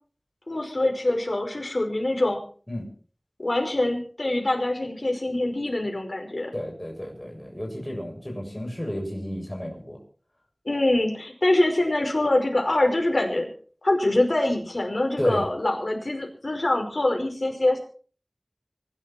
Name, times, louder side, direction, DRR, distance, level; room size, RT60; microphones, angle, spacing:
voice 1, 0.5-2.4 3.4-6.5 10.7-13.5 13.8-17.8, left 1 dB, 65° left, 2 dB, 5.2 m, -24 dB
voice 2, 6.5-10.0 15.2-15.4, equal, 20° left, 0 dB, 7.0 m, -32 dB
24.5 x 12.0 x 4.5 m, 0.43 s
wide cardioid pair, 45°, 0 cm